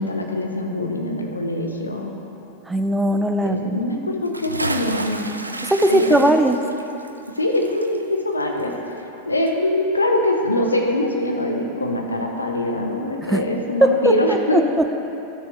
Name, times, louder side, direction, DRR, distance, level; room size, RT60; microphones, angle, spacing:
voice 1, 0.0-2.1 3.4-5.3 5.9-6.3 7.3-8.7 9.3-14.6, left 1 dB, 80° left, 2 dB, 0.9 m, -23 dB
voice 2, 2.7-3.8 5.6-6.6 13.2-13.4 13.8-14.9, right 1 dB, 5° right, 6 dB, 0.5 m, -19 dB
Bathtub (filling or washing) / Splash splatter, 4.2-9.2 9.5-9.6, right 2 dB, 85° right, 0.4 m, -31 dB
12.5 x 6.3 x 3.3 m, 3.0 s
figure-of-eight pair, 90°, 0 cm